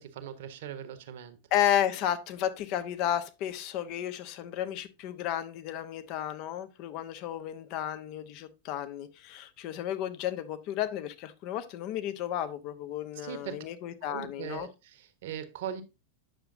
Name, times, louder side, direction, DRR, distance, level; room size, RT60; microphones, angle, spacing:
voice 1, 0.0-1.4 13.1-13.6 14.0-15.8, right 9 dB, 55° right, 1.2 m, -40 dB
voice 2, 1.5-14.7, left 11 dB, 40° left, 1.0 m, -32 dB
9.1 x 6.8 x 2.6 m
figure-of-eight pair, 90°, 0 cm